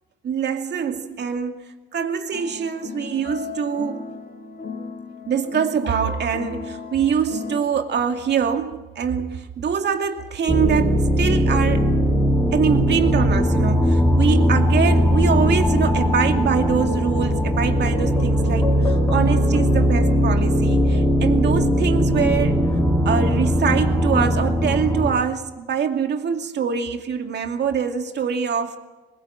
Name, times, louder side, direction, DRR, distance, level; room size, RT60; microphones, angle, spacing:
voice 1, 0.2-1.6 1.9-4.0 5.3-11.9 12.5-22.6 23.0-28.8, right 7 dB, 60° right, 2.4 m, -24 dB
sound 1, 2.3-7.6, left 5 dB, 50° left, 4.4 m, -35 dB
sound 2, 10.5-25.1, equal, 10° left, 4.8 m, -19 dB
22.5 x 21.5 x 7.7 m
cardioid pair, 90°, 20 cm